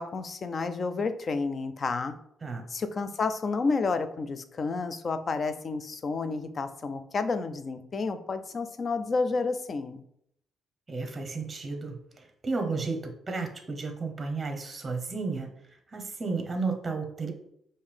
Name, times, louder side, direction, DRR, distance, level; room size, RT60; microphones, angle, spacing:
voice 1, 0.0-2.2 2.7-10.0, left 4 dB, 45° left, 11 dB, 0.4 m, -30 dB
voice 2, 10.9-15.5 15.9-17.3, right 4 dB, 30° right, 4 dB, 0.8 m, -33 dB
5.2 x 2.7 x 3.3 m, 0.73 s
cardioid pair, 90°, 0 cm